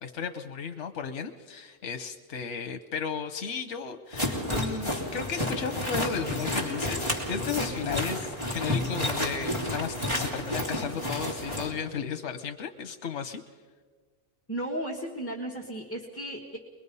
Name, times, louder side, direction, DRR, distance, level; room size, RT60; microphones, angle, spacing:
voice 1, 0.0-13.4, left 6 dB, 85° left, 8 dB, 1.1 m, -34 dB
sound 1, 4.1-11.7, left 1 dB, 25° right, 3.3 m, -31 dB
voice 2, 14.5-16.6, right 1 dB, 10° left, -3 dB, 1.6 m, -35 dB
24.5 x 22.0 x 5.5 m, 1.5 s
omnidirectional pair, 1.2 m